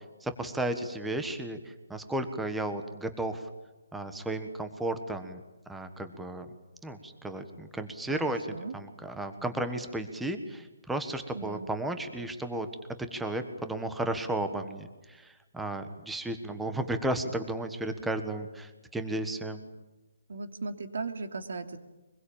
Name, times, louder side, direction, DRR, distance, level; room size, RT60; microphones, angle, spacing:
voice 1, 0.2-3.4 3.9-5.4 5.7-6.5 6.8-12.7 13.1-19.6, right 1 dB, 5° right, 8 dB, 1.4 m, -34 dB
voice 2, 8.1-8.7 11.3-11.7 20.3-21.8, right 3 dB, 70° right, 7 dB, 2.9 m, -37 dB
24.5 x 22.0 x 8.8 m, 1.1 s
hypercardioid pair, 170°, 0 cm